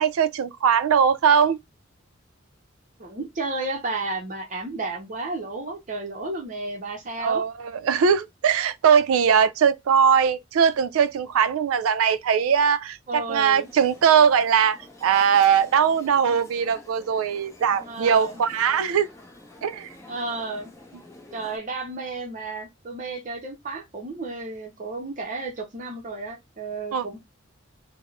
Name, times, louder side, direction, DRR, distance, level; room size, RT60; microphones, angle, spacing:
voice 1, 0.0-1.6 7.2-19.1 19.6-19.9 26.9-27.1, right 7 dB, 90° right, 0.3 m, -20 dB
voice 2, 3.0-7.4 13.1-13.7 17.9-18.4 20.1-20.7 21.3-27.2, right 3 dB, 40° right, 0.6 m, -32 dB
sound 1, 13.3-21.6, left 2 dB, 15° left, 0.6 m, -48 dB
3.5 x 2.0 x 2.2 m
head